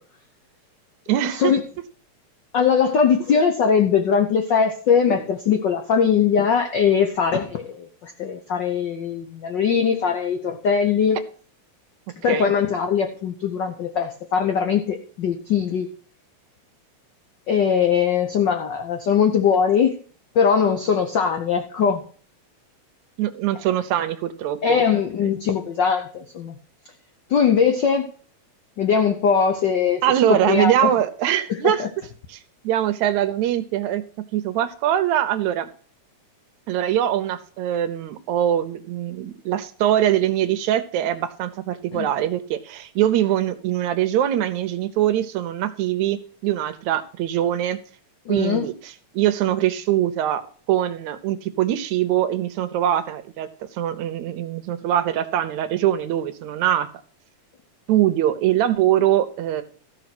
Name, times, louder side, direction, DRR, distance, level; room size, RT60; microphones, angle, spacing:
voice 1, 1.1-1.5 12.3-12.5 23.2-24.8 30.0-31.8 32.3-32.4 32.6-34.0 34.3-35.7 36.7-47.8 48.3-50.4 50.7-56.9 57.9-59.6, right 11 dB, 80° right, 12 dB, 2.1 m, -22 dB
voice 2, 2.5-11.2 12.2-15.9 17.5-20.0 20.3-22.0 24.6-26.6 27.3-28.1 28.8-30.0 30.5-30.9 31.5-31.9 41.9-42.1 48.3-48.7, left 6 dB, 85° left, 5 dB, 0.9 m, -21 dB
14.0 x 5.8 x 6.0 m, 0.43 s
omnidirectional pair, 3.3 m